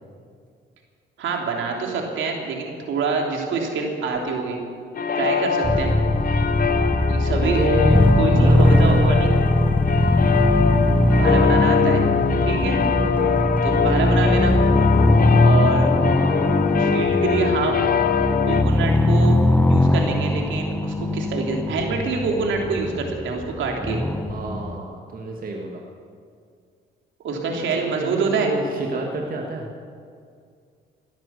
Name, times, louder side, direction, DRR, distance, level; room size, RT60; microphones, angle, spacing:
voice 1, 1.2-4.6 5.1-5.9 7.0-7.6 8.1-9.3 11.1-12.0 12.4-12.8 13.6-14.6 15.4-15.9 16.8-18.0 18.4-19.4 19.6-24.0 27.2-28.5, right 4 dB, 75° right, 1 dB, 3.1 m, -26 dB
sound 1, 5.0-18.6, left 7 dB, 45° left, 0.9 m, -23 dB
sound 2, 5.6-24.8, left 1 dB, 10° left, 0.9 m, -20 dB
voice 2, 7.4-9.2 12.9-13.0 16.0-16.4 24.3-25.9 27.8-29.7, right 2 dB, 45° right, 0 dB, 1.8 m, -29 dB
17.0 x 10.5 x 8.2 m, 2.2 s
cardioid pair, 90°, 20 cm